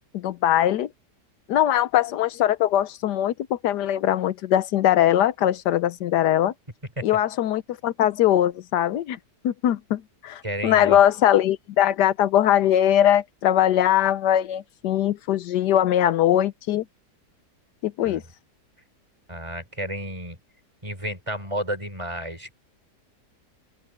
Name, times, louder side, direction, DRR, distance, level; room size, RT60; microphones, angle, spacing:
voice 1, 0.1-0.9 1.5-6.5 7.0-9.2 9.4-16.8 17.8-18.2, left 11 dB, 85° left, 1.3 m, -21 dB
voice 2, 10.4-11.0 18.0-18.2 19.3-20.4 20.8-22.5, equal, 20° right, 5.7 m, -31 dB
open air
omnidirectional pair, 1.7 m